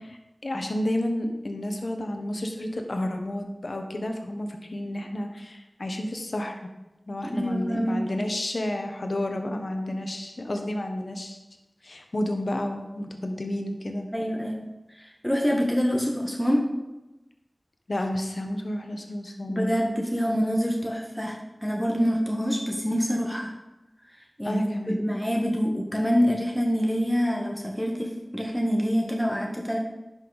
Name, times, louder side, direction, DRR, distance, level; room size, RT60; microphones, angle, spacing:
voice 1, 0.1-6.6 7.1-11.4 11.8-14.1 17.9-19.8 24.4-25.0, left 1 dB, 75° left, 4 dB, 1.0 m, -31 dB
voice 2, 7.2-8.1 14.1-14.7 15.0-16.6 19.5-23.5 24.4-29.8, equal, ahead, 0 dB, 1.3 m, -26 dB
10.5 x 5.7 x 4.0 m, 1.0 s
wide cardioid pair, 55°, 0 cm